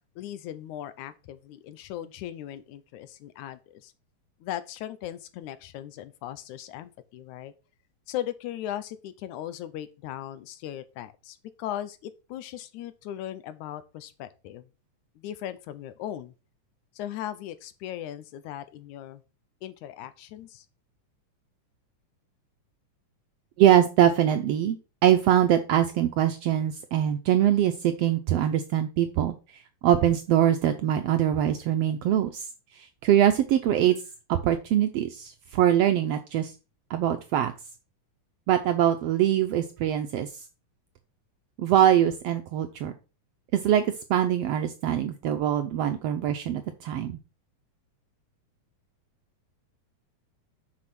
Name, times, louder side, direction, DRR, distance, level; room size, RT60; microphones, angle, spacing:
voice 1, 0.2-3.9 4.4-7.5 8.1-14.7 15.2-16.3 17.0-19.2 19.6-20.7, left 12 dB, 80° left, 2.1 m, -38 dB
voice 2, 23.6-24.8 25.0-32.5 32.7-33.9 34.3-36.5 36.9-37.5 38.5-40.3 41.6-42.9 43.5-47.2, right 11 dB, 75° right, 1.4 m, -23 dB
6.4 x 5.8 x 5.9 m
omnidirectional pair, 3.5 m